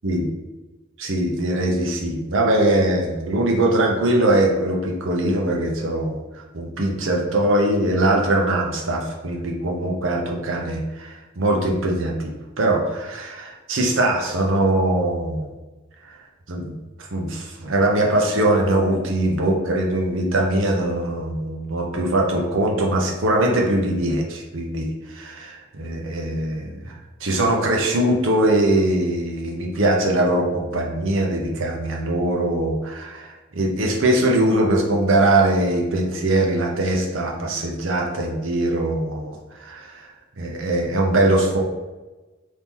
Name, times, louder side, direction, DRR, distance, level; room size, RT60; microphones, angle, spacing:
voice 1, 1.0-15.5 16.5-16.8 17.1-26.9 27.2-40.1 40.4-41.6, right 1 dB, 65° right, 0 dB, 0.7 m, -21 dB
3.0 x 2.8 x 3.6 m, 1.2 s
head